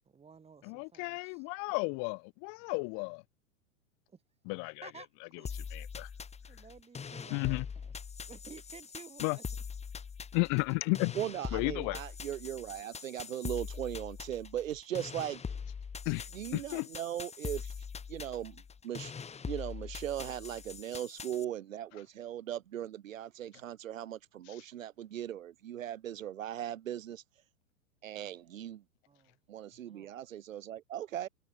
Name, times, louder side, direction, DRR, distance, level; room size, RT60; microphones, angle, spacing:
voice 1, 0.0-1.4 4.1-4.2 4.8-5.1 5.4-5.8 6.5-9.5 29.1-29.4 29.8-30.2, right 5 dB, 15° right, 7.8 m, -54 dB
voice 2, 0.6-3.2 4.5-4.9 5.7-6.1 7.3-7.7 9.2-9.4 10.3-11.1 11.5-12.0 16.1-16.9, left 39 dB, 50° left, 3.7 m, -33 dB
sound 1, 5.4-21.4, left 6 dB, 15° left, 5.1 m, -43 dB
voice 3, 11.2-15.6 16.3-19.1 19.5-27.5 28.0-28.8 29.5-31.3, right 11 dB, 85° right, 3.6 m, -39 dB
hypercardioid pair, 130°, 39 cm